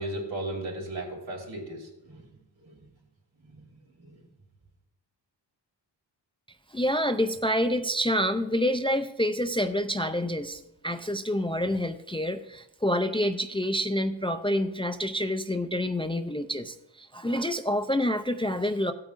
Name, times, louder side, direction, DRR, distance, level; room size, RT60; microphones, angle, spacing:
voice 1, 0.0-2.2 2.6-2.8 3.4-3.7 4.0-4.2, right 1 dB, 80° right, -1 dB, 3.3 m, -36 dB
voice 2, 6.7-18.9, equal, 15° left, 7 dB, 0.3 m, -27 dB
16.5 x 8.8 x 2.5 m, 0.90 s
wide cardioid pair, 110°, 44 cm